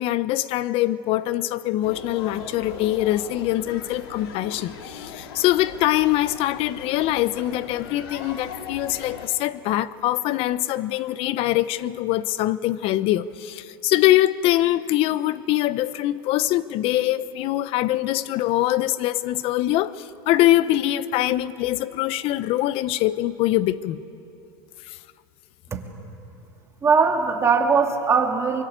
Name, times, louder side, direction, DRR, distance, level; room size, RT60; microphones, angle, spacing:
voice 1, 0.0-24.0 24.9-25.0, left 14 dB, 50° left, 0.8 m, -23 dB
sound 1, 1.8-9.3, left 6 dB, 75° left, 2.8 m, -39 dB
voice 2, 26.8-28.6, right 5 dB, 20° right, 2.7 m, -20 dB
24.0 x 22.5 x 8.2 m
supercardioid pair, 125°, 13 cm